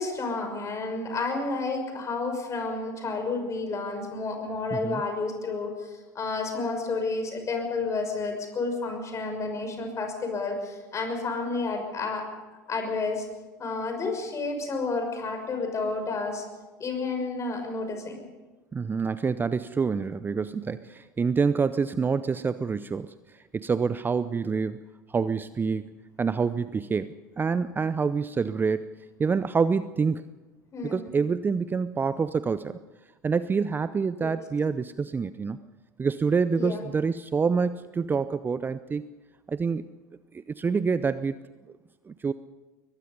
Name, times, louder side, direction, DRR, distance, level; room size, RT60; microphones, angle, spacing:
voice 1, 0.0-12.3 12.7-13.3 13.6-16.4 16.8-18.3 30.7-31.0 34.2-34.4 36.5-36.8, left 3 dB, 30° left, 4 dB, 6.6 m, -30 dB
voice 2, 4.7-5.0 18.7-23.1 23.5-24.8 25.1-25.8 26.2-28.9 29.2-30.2 30.8-32.8 33.2-35.6 36.0-39.1 39.5-39.8 40.3-41.4 42.1-42.3, right 5 dB, 20° right, 14 dB, 0.7 m, -27 dB
22.0 x 21.0 x 5.5 m, 1.2 s
hypercardioid pair, 80°, 10 cm